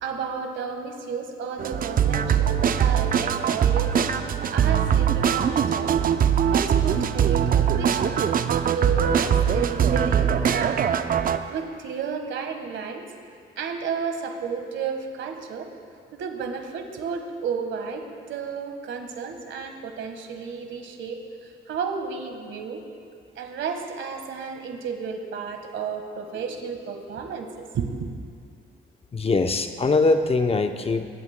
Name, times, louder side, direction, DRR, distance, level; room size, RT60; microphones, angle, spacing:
voice 1, 0.0-4.0 4.5-6.0 6.4-8.3 8.6-10.9 11.5-13.0 13.6-15.7 16.1-21.2 21.7-22.8 23.4-28.1, right 6 dB, 75° right, 5 dB, 1.5 m, -32 dB
sound 1, 1.6-11.4, right 8 dB, 45° right, 0.5 m, -22 dB
voice 2, 29.1-31.2, left 3 dB, 30° left, 7 dB, 0.7 m, -22 dB
23.0 x 11.5 x 2.2 m, 2.2 s
cardioid pair, 90°, 20 cm